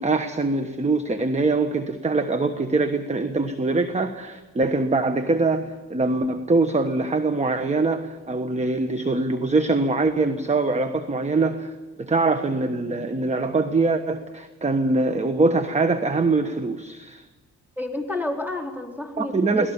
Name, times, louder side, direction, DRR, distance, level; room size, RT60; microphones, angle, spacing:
voice 1, 0.0-17.2 19.2-19.7, right 3 dB, 20° right, 9 dB, 1.3 m, -23 dB
voice 2, 17.8-19.7, left 2 dB, 5° right, 2 dB, 4.1 m, -30 dB
22.5 x 18.5 x 7.2 m, 1.2 s
cardioid pair, 90°, 30 cm